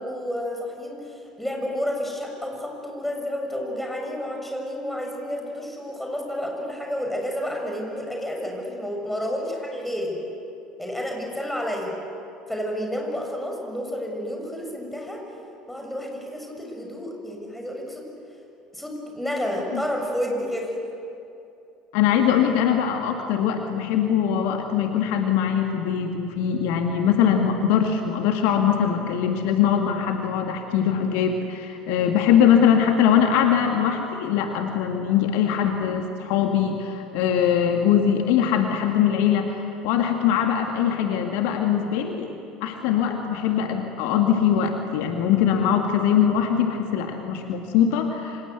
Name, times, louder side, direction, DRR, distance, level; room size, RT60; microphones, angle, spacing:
voice 1, 0.0-10.2 10.8-11.9 12.5-15.2 15.7-18.0 18.7-20.8, equal, 5° left, 1 dB, 6.9 m, -30 dB
voice 2, 21.9-42.3 42.6-48.4, left 8 dB, 55° left, 4 dB, 2.0 m, -22 dB
28.0 x 26.5 x 8.2 m, 2.8 s
figure-of-eight pair, 65°, 4 cm